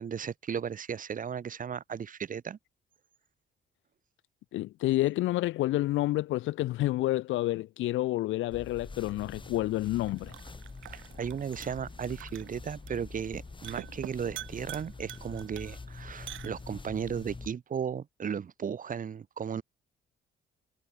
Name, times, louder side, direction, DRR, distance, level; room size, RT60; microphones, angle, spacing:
voice 1, 0.0-2.6 10.9-19.6, right 7 dB, 45° right, 1.1 m, -35 dB
voice 2, 4.5-10.3, left 16 dB, 80° left, 0.5 m, -29 dB
sound 1, 8.5-17.5, left 3 dB, 25° left, 3.5 m, -46 dB
sound 2, 9.0-17.0, right 13 dB, 75° right, 1.8 m, -48 dB
cardioid pair, 90°, 20 cm